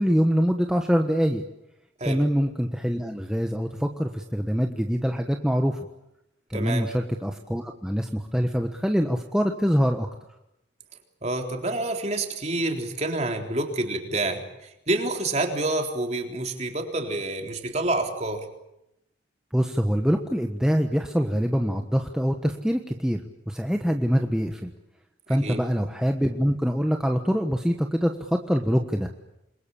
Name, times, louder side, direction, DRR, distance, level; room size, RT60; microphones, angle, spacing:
voice 1, 0.0-1.4 2.1-5.8 6.5-10.1 19.5-24.7 25.3-29.1, equal, 5° right, 3 dB, 1.3 m, -24 dB
voice 2, 6.5-6.9 11.2-18.4 25.3-25.6, right 2 dB, 35° right, 3 dB, 3.8 m, -28 dB
27.5 x 22.5 x 8.6 m, 0.86 s
head